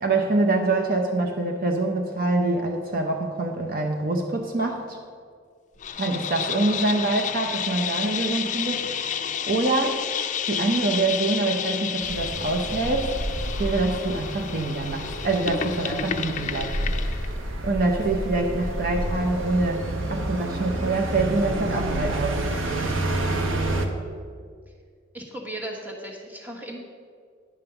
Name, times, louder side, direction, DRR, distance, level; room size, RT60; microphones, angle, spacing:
voice 1, 0.0-5.0 6.0-9.0 9.5-13.2 13.6-16.8 17.6-22.5, right 2 dB, 45° right, 3 dB, 0.7 m, -25 dB
sound 1, 5.8-17.3, left 8 dB, 40° left, 0.4 m, -31 dB
sound 2, 12.0-23.9, right 1 dB, 85° right, 0.9 m, -29 dB
voice 2, 25.1-26.8, right 1 dB, 10° right, -1 dB, 1.3 m, -37 dB
9.7 x 5.4 x 6.9 m, 2.1 s
head